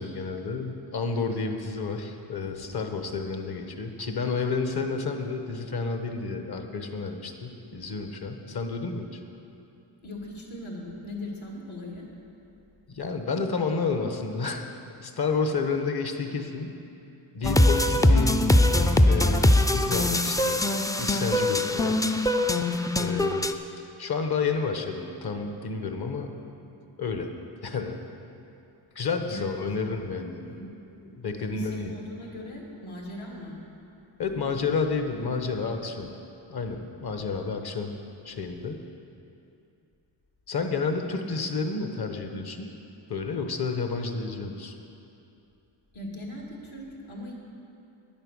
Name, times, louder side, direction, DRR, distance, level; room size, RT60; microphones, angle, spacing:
voice 1, 0.0-9.2 12.9-14.7 15.0-16.8 17.3-18.4 19.1-20.6 21.0-22.2 23.0-23.4 24.0-26.3 27.0-27.3 27.6-28.0 28.9-30.6 31.0-31.9 34.2-36.1 36.5-37.9 38.2-38.8 40.5-42.7 43.1-44.7, left 4 dB, 50° left, 5 dB, 1.2 m, -30 dB
voice 2, 10.0-12.1 29.3-29.5 29.8-30.0 30.4-30.7 31.5-33.6 41.8-41.9 45.9-47.3, left 1 dB, 75° left, -2 dB, 2.4 m, -39 dB
sound 1, 17.4-23.5, left 1 dB, 10° left, 0.4 m, -22 dB
9.7 x 9.0 x 6.4 m, 2.7 s
cardioid pair, 70°, 48 cm